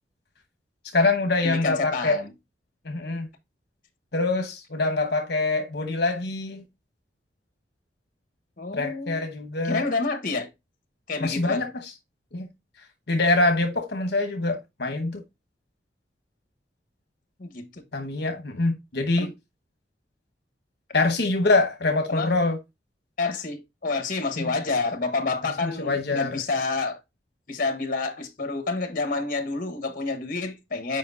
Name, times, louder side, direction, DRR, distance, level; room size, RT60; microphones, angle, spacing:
voice 1, 0.9-2.2 2.8-3.3 4.1-6.6 8.7-9.9 11.2-11.7 12.3-12.5 13.1-15.2 17.9-19.3 20.9-22.6 25.6-26.4, left 2 dB, 65° left, 1.0 m, -24 dB
voice 2, 1.4-2.3 8.6-9.2 9.6-10.5 11.1-11.7 17.4-17.8 19.2-19.3 22.1-22.3 23.2-27.0 27.5-31.0, left 3 dB, 50° left, 1.2 m, -29 dB
7.6 x 5.0 x 2.5 m
head